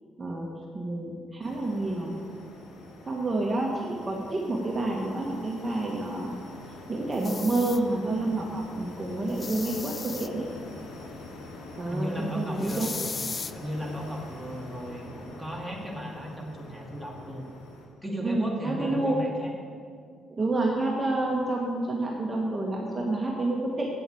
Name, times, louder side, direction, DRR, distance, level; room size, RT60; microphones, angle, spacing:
voice 1, 0.7-2.2 3.0-6.3 6.9-10.4 11.8-12.9 18.2-19.2 20.3-23.9, right 2 dB, 25° right, -2 dB, 1.7 m, -29 dB
sound 1, 1.4-17.9, left 2 dB, 90° left, 1.9 m, -45 dB
sound 2, 7.1-7.8 9.3-10.3 12.6-13.5, left 4 dB, 35° left, 0.4 m, -36 dB
voice 2, 11.8-13.1 13.5-17.5 18.0-19.5, equal, ahead, -1 dB, 2.4 m, -36 dB
8.7 x 7.7 x 7.9 m, 2.1 s
cardioid pair, 90°, 0 cm